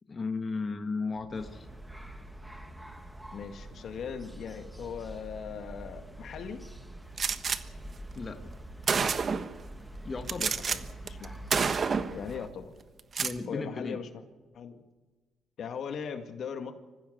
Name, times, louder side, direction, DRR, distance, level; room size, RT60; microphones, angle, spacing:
voice 1, 0.1-1.7 8.1-8.5 10.0-10.6 13.2-14.0, left 4 dB, 35° left, 6 dB, 1.8 m, -35 dB
sound 1, 1.1-14.1, right 5 dB, 85° right, 4.4 m, -53 dB
sound 2, 1.3-12.5, equal, 5° right, 1.9 m, -46 dB
voice 2, 3.3-6.6 10.7-11.4 12.1-12.7 13.5-14.1 14.5-14.8 15.6-16.7, left 7 dB, 65° left, 7 dB, 2.0 m, -39 dB
Gunshot gunfire, 7.2-7.6 8.4-8.5 8.9-9.6 10.3-10.8 11.1-11.3 11.5-12.2 13.0-13.4, right 5 dB, 45° right, 1.2 m, -28 dB
25.0 x 15.0 x 7.9 m, 1.3 s
cardioid pair, 90°, 0 cm